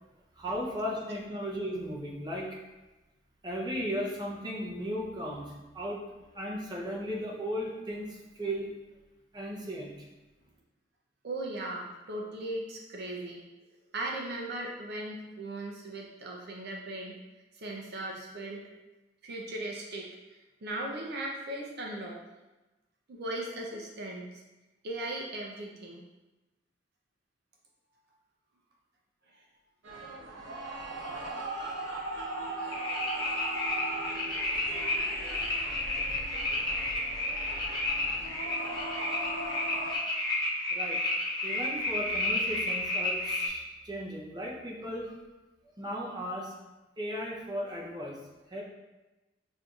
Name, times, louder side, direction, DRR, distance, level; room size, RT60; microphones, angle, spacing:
voice 1, 0.4-2.5 3.4-6.0 6.3-8.7 9.3-10.1 40.7-41.0 41.4-45.1 45.7-46.5 47.0-48.2 48.5-48.6, equal, 25° right, -3 dB, 0.7 m, -36 dB
voice 2, 11.2-13.4 13.9-17.1 17.5-18.6 19.2-22.2 23.1-24.4 24.8-26.0 29.3-29.4, right 1 dB, 60° right, -1 dB, 0.5 m, -38 dB
sound 1, 29.8-40.0, right 2 dB, 85° right, 0.9 m, -38 dB
sound 2, 32.7-43.5, left 2 dB, 20° left, 0.8 m, -31 dB
6.1 x 2.6 x 2.4 m, 1.1 s
head